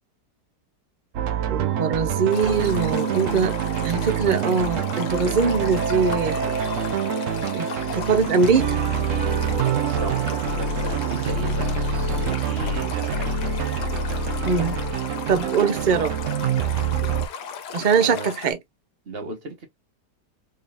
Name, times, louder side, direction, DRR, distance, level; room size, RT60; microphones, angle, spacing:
sound 1, 1.1-17.3, right 6 dB, 60° right, 0.9 m, -26 dB
voice 1, 1.5-3.5 3.8-6.4 7.5-7.7 7.9-8.8 14.4-14.8 15.3-16.2 17.7-18.6, right 5 dB, 75° right, 0.4 m, -22 dB
Stream, 2.3-18.5, left 7 dB, 80° left, 1.5 m, -36 dB
voice 2, 9.8-11.8 12.1-13.4 17.8-18.3 19.0-19.7, right 4 dB, 40° right, 1.3 m, -36 dB
3.7 x 3.7 x 2.4 m
omnidirectional pair, 1.8 m